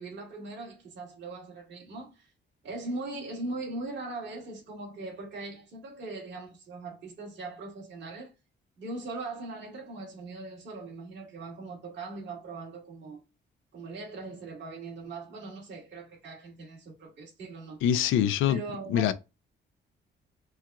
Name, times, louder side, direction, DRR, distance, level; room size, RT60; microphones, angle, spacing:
voice 1, 0.0-2.3 2.6-8.3 8.8-13.2 13.7-17.8 18.5-19.1, right 3 dB, 65° right, 2.2 m, -40 dB
voice 2, 17.8-18.6 18.9-19.1, left 10 dB, 90° left, 0.5 m, -24 dB
4.4 x 2.3 x 3.6 m
cardioid pair, 90°, 20 cm